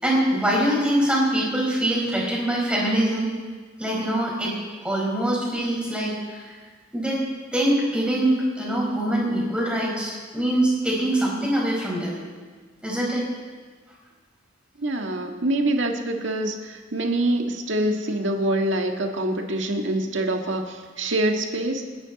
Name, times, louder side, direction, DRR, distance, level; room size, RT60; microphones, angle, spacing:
voice 1, 0.0-3.3 3.8-4.5 4.8-6.5 6.9-7.2 7.5-12.2 12.8-13.2, right 1 dB, 5° right, -4 dB, 4.9 m, -23 dB
voice 2, 14.8-21.8, right 1 dB, 80° right, 3 dB, 1.8 m, -25 dB
28.0 x 10.5 x 4.2 m, 1.5 s
head